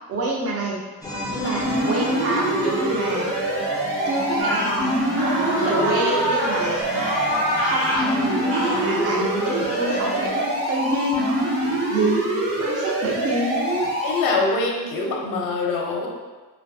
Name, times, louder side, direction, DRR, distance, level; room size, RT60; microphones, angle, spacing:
voice 1, 0.1-0.8 1.3-3.3 4.1-6.9 7.6-13.9, right 2 dB, 40° right, -2 dB, 0.5 m, -27 dB
sound 1, 1.0-10.3, left 1 dB, 10° left, 0.4 m, -32 dB
voice 2, 1.3-1.8 14.0-16.1, left 3 dB, 60° left, -1 dB, 0.6 m, -24 dB
sound 2, 1.6-14.3, right 1 dB, 60° right, 0.9 m, -25 dB
sound 3, 4.4-4.7 5.2-6.6 6.9-8.0 8.5-8.8, equal, 85° right, 1.1 m, -25 dB
2.6 x 2.2 x 2.5 m, 1.3 s
cardioid pair, 135°, 37 cm